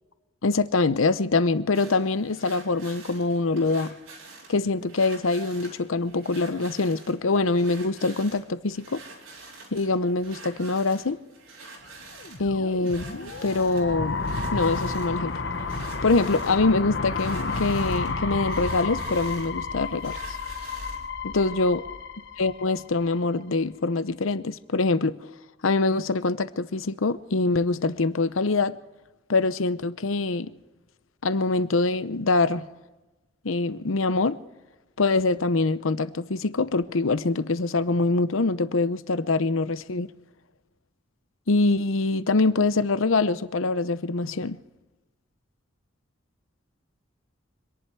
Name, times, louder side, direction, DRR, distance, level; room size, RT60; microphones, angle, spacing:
voice 1, 0.4-3.9 4.5-9.0 9.7-11.2 12.4-14.2 14.5-15.3 16.0-20.4 21.2-21.8 22.4-25.3 25.6-28.8 29.3-30.5 31.2-32.6 33.4-34.4 35.0-40.1 41.5-44.6, left 3 dB, 85° left, 0.8 m, -24 dB
sound 1, 1.7-21.1, right 3 dB, 90° right, 4.4 m, -47 dB
sound 2, 12.1-23.1, left 3 dB, 60° left, 1.1 m, -31 dB
26.0 x 11.0 x 4.7 m
head